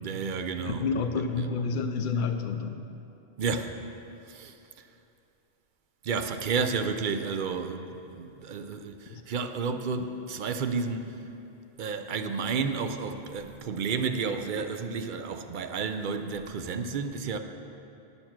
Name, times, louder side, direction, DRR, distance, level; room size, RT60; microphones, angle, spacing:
voice 1, 0.0-1.5 3.4-3.8 4.3-4.6 6.0-11.2 11.8-17.4, right 5 dB, 55° right, 8 dB, 0.6 m, -31 dB
voice 2, 0.6-2.8 9.1-9.2, left 4 dB, 55° left, 7 dB, 0.7 m, -29 dB
11.0 x 7.0 x 5.9 m, 2.8 s
omnidirectional pair, 1.2 m